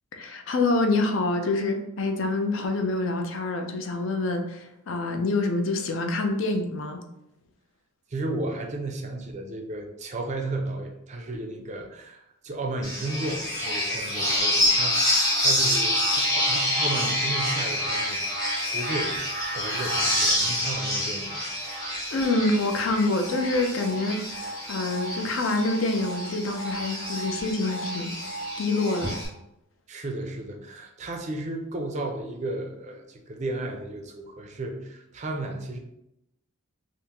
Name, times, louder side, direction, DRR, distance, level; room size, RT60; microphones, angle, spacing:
voice 1, 0.1-7.0 22.1-28.1 28.6-29.2, left 2 dB, 60° left, 4 dB, 0.4 m, -26 dB
voice 2, 8.1-19.1 19.5-21.5 21.7-21.9 29.9-35.8, right 2 dB, 35° right, 3 dB, 0.4 m, -34 dB
sound 1, 12.8-29.3, left 1 dB, 15° left, 0.9 m, -27 dB
3.4 x 2.5 x 2.9 m, 0.84 s
head